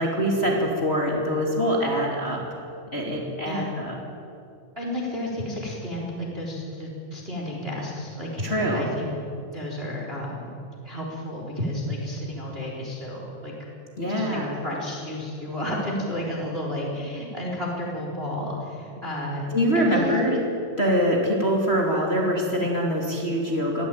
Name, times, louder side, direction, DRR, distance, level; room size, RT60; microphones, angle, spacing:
voice 1, 0.0-2.4 2.9-3.9 8.4-8.9 14.0-14.6 19.5-20.4 20.8-23.9, equal, 15° left, -2 dB, 2.3 m, -24 dB
voice 2, 4.7-9.1 9.5-10.5 10.8-13.5 14.0-19.5 19.7-20.3, left 1 dB, 15° right, -2 dB, 3.4 m, -32 dB
22.0 x 16.0 x 9.1 m, 2.6 s
omnidirectional pair, 5.3 m